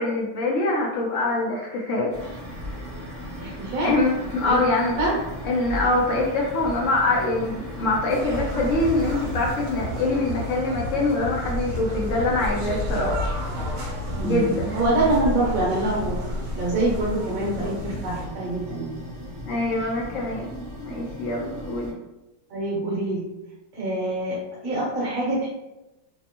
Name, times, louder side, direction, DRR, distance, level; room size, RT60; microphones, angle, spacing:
voice 1, 0.0-2.1 3.8-5.0 5.4-13.2 14.2-14.8 19.5-21.9, left 2 dB, 70° left, -2 dB, 0.7 m, -24 dB
sound 1, 2.1-21.9, left 1 dB, 35° right, 0.8 m, -36 dB
voice 2, 3.4-3.9 4.4-4.6 5.0-5.1 14.1-16.2 16.5-19.0 22.5-23.3 23.7-24.4 24.6-25.5, right 2 dB, 55° right, -6 dB, 1.3 m, -25 dB
sound 2, 8.1-18.2, equal, 85° right, 1.4 m, -32 dB
3.4 x 2.0 x 2.8 m, 0.97 s
omnidirectional pair, 1.9 m